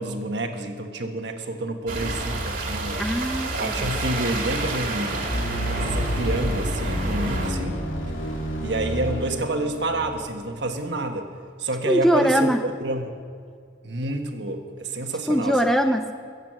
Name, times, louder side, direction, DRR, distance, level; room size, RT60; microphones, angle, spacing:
voice 1, 0.0-3.1 3.6-7.8 8.6-11.3 11.6-13.1 13.8-15.6, right 2 dB, 60° right, 5 dB, 1.4 m, -29 dB
sound 1, 1.9-7.5, right 2 dB, 45° right, 2.3 m, -29 dB
voice 2, 3.0-3.9 11.9-12.6 15.3-16.1, equal, ahead, 6 dB, 0.5 m, -21 dB
sound 2, 5.3-10.6, equal, 80° left, 2.8 m, -29 dB
22.0 x 8.2 x 7.6 m, 2.2 s
head